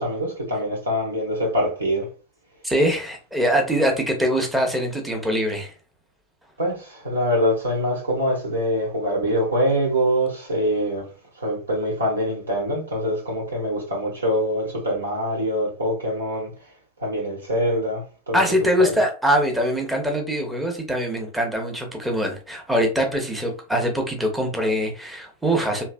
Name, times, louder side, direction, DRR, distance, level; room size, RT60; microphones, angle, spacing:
voice 1, 0.0-2.1 6.6-11.0 11.4-16.5 17.0-18.4 18.8-18.9, equal, 70° right, 1.4 m, -24 dB
voice 2, 2.6-5.7 18.3-25.8, equal, 5° right, 0.9 m, -23 dB
3.2 x 2.8 x 2.5 m
figure-of-eight pair, 90°, 0 cm